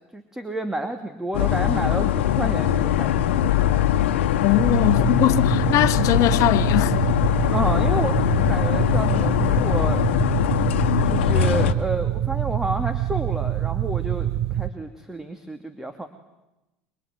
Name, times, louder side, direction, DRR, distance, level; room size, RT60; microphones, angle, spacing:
voice 1, 0.1-3.8 7.5-10.0 11.0-16.1, right 1 dB, 10° right, 2.5 m, -30 dB
sound 1, 1.3-11.7, left 11 dB, 80° left, 1.4 m, -21 dB
voice 2, 4.4-7.0, left 14 dB, 55° left, 1.3 m, -21 dB
sound 2, 4.6-14.7, right 13 dB, 55° right, 1.2 m, -26 dB
24.0 x 24.0 x 9.4 m
hypercardioid pair, 85°, 6 cm